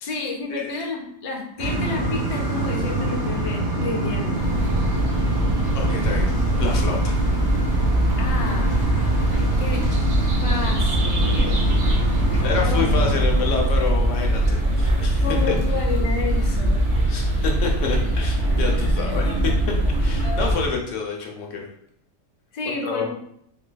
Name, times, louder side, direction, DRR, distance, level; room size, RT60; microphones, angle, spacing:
voice 1, 0.0-4.4 8.2-10.1 10.4-11.6 12.3-12.4 12.7-12.8 15.2-16.8 22.5-23.1, left 3 dB, 50° left, -1 dB, 0.4 m, -31 dB
sound 1, 1.6-13.2, right 2 dB, 45° right, 1.2 m, -25 dB
sound 2, 4.3-20.7, right 1 dB, 65° right, 1.1 m, -22 dB
voice 2, 5.7-6.3 6.6-7.2 12.4-15.2 17.1-19.5 20.0-21.7 22.6-23.1, left 5 dB, 75° left, 1 dB, 1.0 m, -28 dB
3.9 x 2.6 x 2.2 m, 0.69 s
omnidirectional pair, 1.3 m